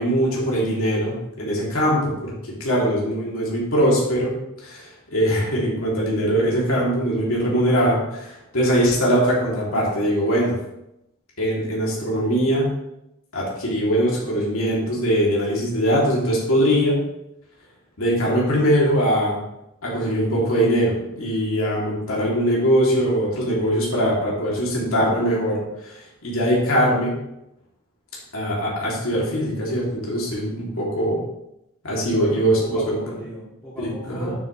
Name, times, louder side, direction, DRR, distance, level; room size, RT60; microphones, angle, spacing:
voice 1, 0.0-2.3 2.6-4.3 4.6-10.5 11.4-12.7 13.3-17.0 18.0-19.4 19.8-27.2 28.3-31.2 31.8-33.0 33.8-34.3, equal, 85° left, -4 dB, 2.5 m, -21 dB
voice 2, 31.9-34.4, equal, 15° left, -9 dB, 2.1 m, -36 dB
8.8 x 6.9 x 3.1 m, 0.85 s
head